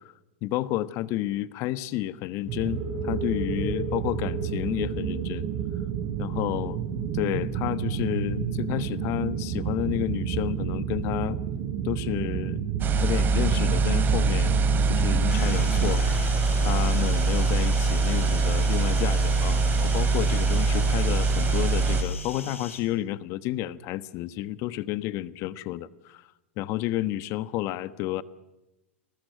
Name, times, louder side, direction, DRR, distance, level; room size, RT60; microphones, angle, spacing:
voice 1, 0.4-5.5 6.2-6.8 7.1-11.4 11.8-12.6 12.9-14.6 14.9-26.2 26.6-28.2, left 15 dB, 45° left, 15 dB, 1.2 m, -31 dB
sound 1, 2.4-15.9, right 7 dB, 45° right, 5.4 m, -30 dB
sound 2, 12.8-22.0, right 3 dB, 30° right, 4.1 m, -23 dB
sound 3, 15.3-22.8, left 5 dB, 85° left, 5.4 m, -41 dB
30.0 x 20.5 x 7.8 m, 0.97 s
hypercardioid pair, 100°, 7 cm